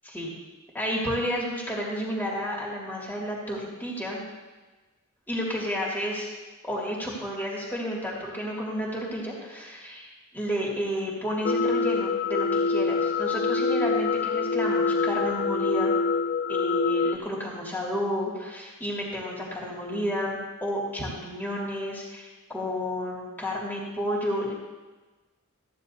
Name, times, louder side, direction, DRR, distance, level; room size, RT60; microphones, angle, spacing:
voice 1, 0.7-4.2 5.3-6.3 6.6-15.9 16.5-24.5, equal, 10° left, -5 dB, 2.4 m, -31 dB
sound 1, 11.4-17.2, left 4 dB, 45° left, 0.3 m, -25 dB
15.0 x 9.7 x 2.7 m, 1.2 s
head